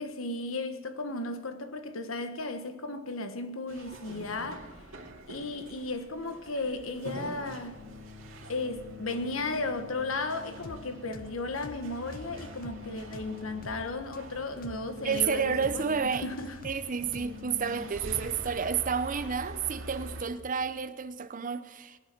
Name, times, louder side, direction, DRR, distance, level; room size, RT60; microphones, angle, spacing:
voice 1, 0.0-4.7 5.3-7.8 8.5-16.5, left 2 dB, 85° left, 1.3 m, -35 dB
sound 1, 3.7-20.2, right 1 dB, 70° right, 2.3 m, -46 dB
sound 2, 7.7-17.8, left 6 dB, 85° right, 3.1 m, -49 dB
sound 3, 10.6-10.8 11.1-11.3 11.6-11.8 12.1-13.8 14.1-14.2 14.6-14.8 15.1-15.3 15.6-15.8 16.1-17.7 18.1-18.5, left 2 dB, 45° left, 0.8 m, -46 dB
voice 2, 15.0-16.3 16.6-22.0, right 6 dB, 40° right, 0.7 m, -30 dB
19.5 x 10.5 x 6.1 m
head